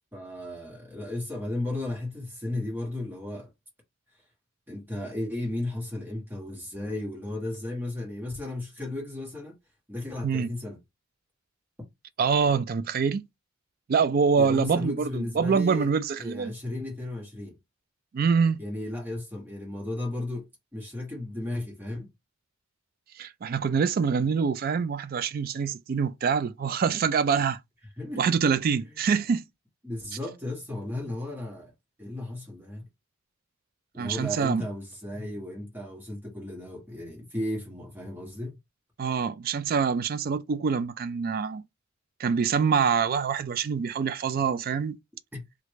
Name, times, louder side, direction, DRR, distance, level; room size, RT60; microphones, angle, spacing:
voice 1, 0.1-3.5 4.7-9.6 9.9-10.8 14.4-15.9 16.2-17.6 18.6-22.1 28.0-28.3 29.8-31.7 32.0-32.9 33.9-38.5 45.3-45.4, left 1 dB, 10° right, 1.2 m, -35 dB
voice 2, 12.2-13.2 13.9-16.5 18.1-18.6 23.2-27.6 28.2-29.4 34.0-34.6 39.0-41.6 42.2-45.0, right 6 dB, 45° right, 0.3 m, -25 dB
3.2 x 2.5 x 3.0 m
head